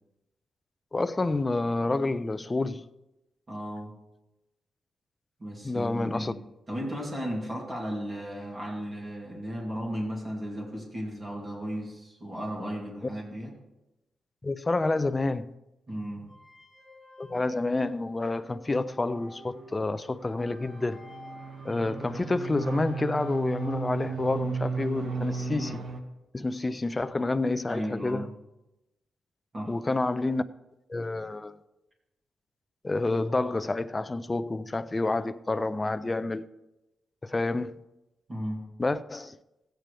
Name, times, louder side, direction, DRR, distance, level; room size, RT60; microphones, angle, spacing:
voice 1, 0.9-2.9 5.6-6.3 14.4-15.5 17.2-21.1 21.6-25.8 26.3-28.3 29.7-30.4 30.9-31.6 32.8-36.4 37.2-37.8 38.8-39.4, left 2 dB, 20° left, 0.4 m, -29 dB
voice 2, 3.5-3.9 5.4-6.4 6.7-13.5 15.9-16.3 27.7-28.3 29.5-29.8 38.3-38.6, equal, 25° right, 2.8 m, -35 dB
sound 1, 16.3-25.9, left 1 dB, 5° right, 3.3 m, -50 dB
sound 2, 19.0-26.0, right 5 dB, 50° right, 1.0 m, -35 dB
15.5 x 9.0 x 3.4 m
wide cardioid pair, 135°, 0 cm